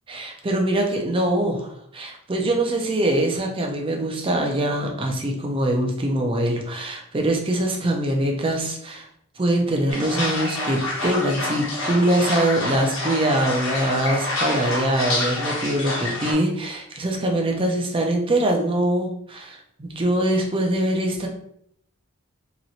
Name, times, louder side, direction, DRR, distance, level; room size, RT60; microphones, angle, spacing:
voice 1, 0.1-9.1 9.4-21.3, right 1 dB, 25° right, 2 dB, 0.5 m, -23 dB
sound 1, 9.9-16.3, left 2 dB, 70° left, 1.1 m, -27 dB
3.0 x 2.9 x 2.6 m, 0.68 s
head